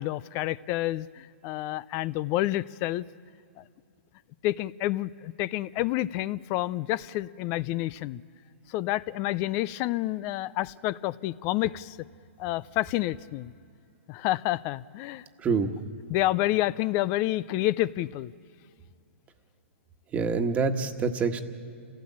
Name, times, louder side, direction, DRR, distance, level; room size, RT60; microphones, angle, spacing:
voice 1, 0.0-3.0 3.6-3.7 4.4-8.2 8.7-12.0 12.4-13.5 14.1-15.2 16.1-18.3, left 16 dB, 35° left, 19 dB, 0.5 m, -29 dB
voice 2, 15.4-15.7 20.1-21.4, right 4 dB, 20° right, 6 dB, 1.5 m, -26 dB
28.5 x 16.5 x 8.6 m, 2.3 s
hypercardioid pair, 135°, 7 cm